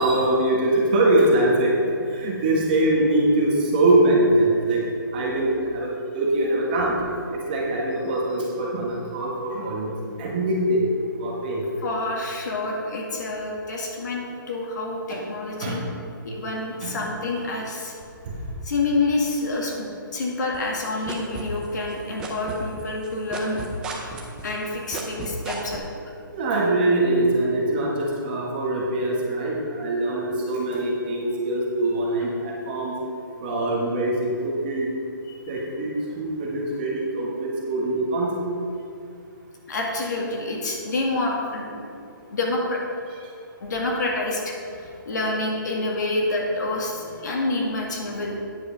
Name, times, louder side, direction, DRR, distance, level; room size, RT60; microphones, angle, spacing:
voice 1, 0.0-4.8 5.1-5.9 6.1-6.9 7.5-10.8 11.2-11.6 15.1-15.2 15.6-15.8 16.8-17.0 26.3-32.9 33.4-34.1 34.4-34.9 35.5-38.4 47.0-47.3, right 1 dB, 25° right, -3 dB, 1.4 m, -23 dB
voice 2, 11.8-15.8 16.2-17.9 18.6-23.6 24.4-25.9 35.3-35.4 39.7-41.8 42.3-42.8 43.6-48.4, left 2 dB, 55° left, -1 dB, 1.9 m, -27 dB
sound 1, 20.5-21.9 22.2-25.8, right 5 dB, 5° right, 0.4 m, -33 dB
9.4 x 6.5 x 5.1 m, 2.5 s
hypercardioid pair, 170°, 11 cm